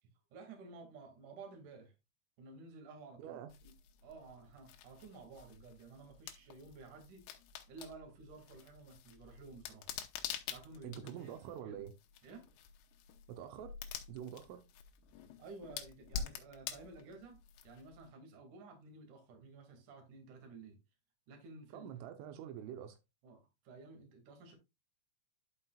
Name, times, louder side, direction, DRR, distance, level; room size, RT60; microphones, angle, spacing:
voice 1, 0.3-1.9 2.4-3.7 4.0-7.2 7.7-9.9 10.5-11.3 11.6-11.8 12.2-12.5 15.4-17.4 17.6-20.8 21.3-22.0 23.2-24.6, right 3 dB, 50° right, 2.9 m, -53 dB
voice 2, 3.2-3.5 10.8-11.9 13.3-13.7 14.1-14.6 21.7-23.0, right 10 dB, 80° right, 3.4 m, -46 dB
sound 1, 3.5-18.1, left 8 dB, 80° left, 3.4 m, -48 dB
12.0 x 5.9 x 2.3 m
omnidirectional pair, 5.8 m